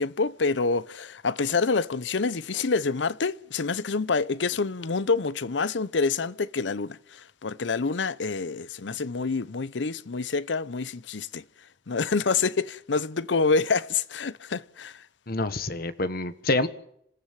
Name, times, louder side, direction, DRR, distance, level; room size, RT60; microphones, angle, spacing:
voice 1, 0.0-7.0 7.4-11.4 11.9-14.9, left 4 dB, 80° left, 0.7 m, -27 dB
voice 2, 15.3-16.7, left 2 dB, 55° left, 1.4 m, -27 dB
26.5 x 15.0 x 7.4 m
head